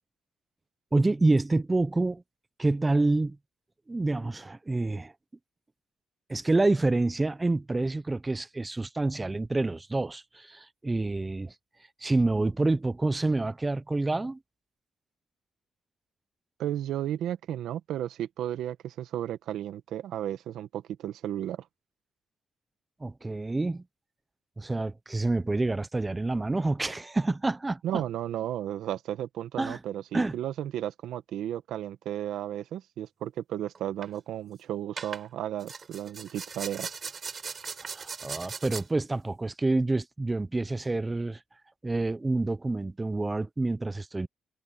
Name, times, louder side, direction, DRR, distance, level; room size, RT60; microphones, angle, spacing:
voice 1, 0.9-2.2 2.6-3.4 3.9-5.1 6.3-11.5 12.0-14.4 23.0-23.8 24.6-28.0 29.6-29.8 30.1-30.4 37.8-41.4 41.8-44.3, right 2 dB, 20° right, 0.7 m, -27 dB
voice 2, 16.6-21.6 27.8-36.9, right 11 dB, 80° right, 1.5 m, -34 dB
sound 1, 33.7-34.1 35.0-35.3 35.6-38.8, right 5 dB, 40° right, 6.6 m, -39 dB
cardioid pair, 90°, 0 cm